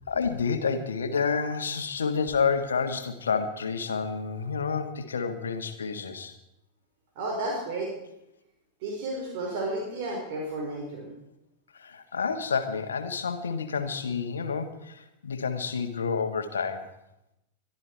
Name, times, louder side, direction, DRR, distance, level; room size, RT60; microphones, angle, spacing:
voice 1, 0.1-6.4 11.7-16.9, left 5 dB, 70° left, 8 dB, 1.7 m, -29 dB
voice 2, 7.1-7.9 8.8-11.1, right 2 dB, 50° right, -1 dB, 4.8 m, -32 dB
22.5 x 12.5 x 4.7 m, 0.86 s
figure-of-eight pair, 90°, 0 cm